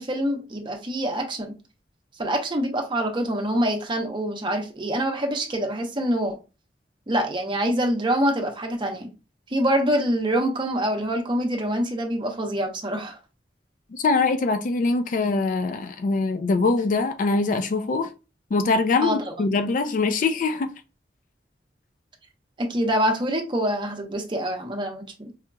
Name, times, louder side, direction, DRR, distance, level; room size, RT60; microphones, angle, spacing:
voice 1, 0.0-1.5 2.2-6.4 7.1-9.1 9.5-13.2 19.0-19.3 22.6-25.3, equal, 30° right, 0.7 m, -25 dB
voice 2, 13.9-18.1 18.5-20.7, left 3 dB, 50° left, 0.3 m, -23 dB
4.8 x 2.8 x 2.2 m
head